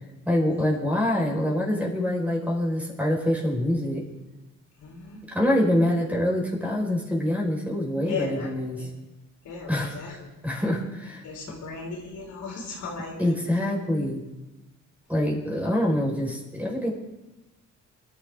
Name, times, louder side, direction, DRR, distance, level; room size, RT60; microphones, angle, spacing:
voice 1, 0.2-4.1 5.3-8.9 9.7-9.9 10.4-11.2 13.2-14.2 15.1-16.9, left 1 dB, 5° right, -2 dB, 4.7 m, -25 dB
voice 2, 4.8-5.2 8.0-8.5 8.8-8.9 9.4-10.3 11.2-13.5, left 4 dB, 75° left, -1 dB, 4.0 m, -37 dB
23.5 x 11.5 x 3.7 m, 1.0 s
cardioid pair, 90°, 30 cm